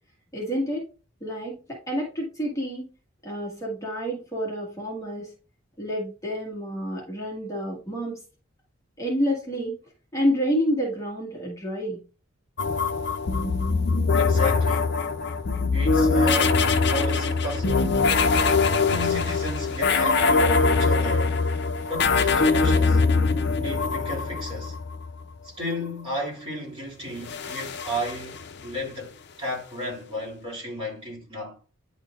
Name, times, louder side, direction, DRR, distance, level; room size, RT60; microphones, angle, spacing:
voice 1, 0.3-0.8 1.2-2.9 3.2-5.3 5.8-8.2 9.0-9.8 10.1-12.0, equal, 15° left, 1.8 m, -28 dB
sound 1, 12.6-25.1 27.2-28.8, left 4 dB, 55° left, 0.6 m, -22 dB
voice 2, 14.1-14.9 15.7-18.0 18.8-21.4 21.9-23.0 23.6-24.8 25.4-31.6, left 1 dB, 25° right, 2.8 m, -34 dB
10.0 x 4.4 x 2.4 m
head